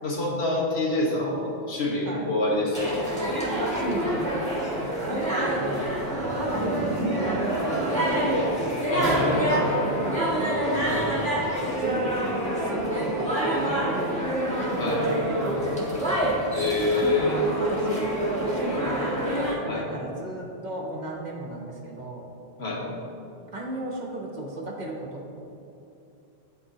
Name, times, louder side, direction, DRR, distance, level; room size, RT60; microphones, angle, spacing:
voice 1, 0.0-3.0 8.9-9.6 14.8-15.0 16.5-17.4 19.7-19.8 22.6-22.8, left 2 dB, 75° left, -3 dB, 1.5 m, -26 dB
sound 1, 2.7-19.6, right 1 dB, 5° left, 1.2 m, -27 dB
voice 2, 3.7-4.2 4.6-5.9 6.3-8.5 9.1-11.3 11.8-16.3 16.9-18.1 18.5-22.2 23.5-25.3, right 2 dB, 45° right, 0 dB, 0.9 m, -34 dB
11.0 x 4.7 x 2.7 m, 2.8 s
omnidirectional pair, 1.1 m